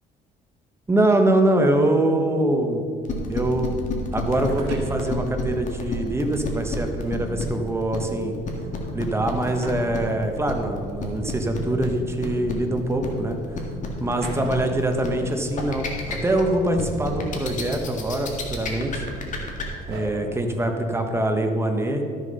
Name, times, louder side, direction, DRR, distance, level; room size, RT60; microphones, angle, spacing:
voice 1, 0.9-2.8 3.3-3.7 4.1-8.3 8.9-13.4 14.0-19.1 19.9-22.0, right 1 dB, 15° right, 4 dB, 1.2 m, -23 dB
sound 1, 3.0-19.6, left 4 dB, 50° left, 1.9 m, -30 dB
sound 2, 4.4-4.9 6.2-6.3 7.8-8.2 9.4-9.8 10.2-10.3 11.8-12.9 14.2-14.8 15.8-15.9 16.1-16.2 17.2-17.8 18.2-20.0, right 3 dB, 85° right, 2.5 m, -42 dB
13.0 x 6.6 x 5.5 m, 2.4 s
cardioid pair, 110°, 17 cm